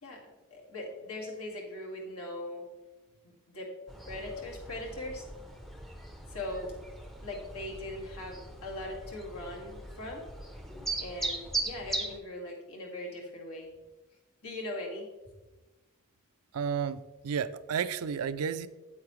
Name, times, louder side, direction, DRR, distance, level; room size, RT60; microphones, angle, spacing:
voice 1, 0.0-2.6 3.5-3.7 4.1-5.3 6.3-6.8 7.2-10.3 11.0-13.7 14.4-15.1, left 1 dB, 70° left, -1 dB, 2.1 m, -40 dB
sound 1, 3.9-12.2, right 2 dB, ahead, 0.6 m, -39 dB
voice 2, 16.5-18.7, right 7 dB, 75° right, 13 dB, 0.4 m, -32 dB
8.8 x 8.4 x 3.2 m, 1.1 s
head